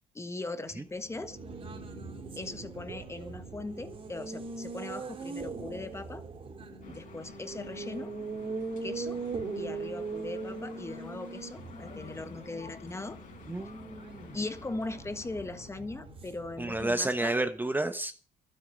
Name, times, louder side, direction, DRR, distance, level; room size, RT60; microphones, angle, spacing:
voice 1, 0.1-1.4 2.4-6.2 6.8-8.1 8.8-9.2 9.6-13.2 14.3-17.3, left 2 dB, 15° left, 1.5 m, -39 dB
Race car auto racing, 0.9-17.1, right 4 dB, 35° right, 3.9 m, -41 dB
sound 1, 6.8-15.7, left 5 dB, 50° left, 5.1 m, -50 dB
voice 2, 13.5-14.4 16.6-18.1, right 2 dB, 10° right, 1.1 m, -31 dB
12.5 x 9.3 x 7.7 m
cardioid pair, 110°, 17 cm